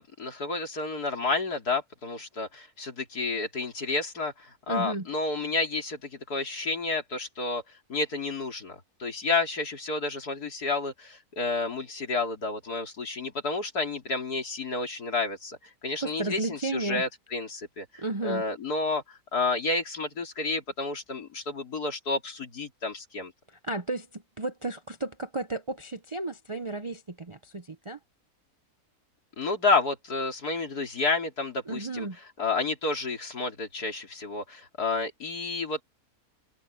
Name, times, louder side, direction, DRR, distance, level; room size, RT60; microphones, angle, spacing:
voice 1, 0.0-7.6 7.9-23.3 29.4-32.1 32.4-35.8, left 3 dB, 90° left, 3.9 m, -30 dB
voice 2, 4.7-5.1 16.0-17.0 18.0-18.4 23.5-28.0 31.7-32.2, right 2 dB, 40° right, 0.4 m, -33 dB
omnidirectional pair, 1.6 m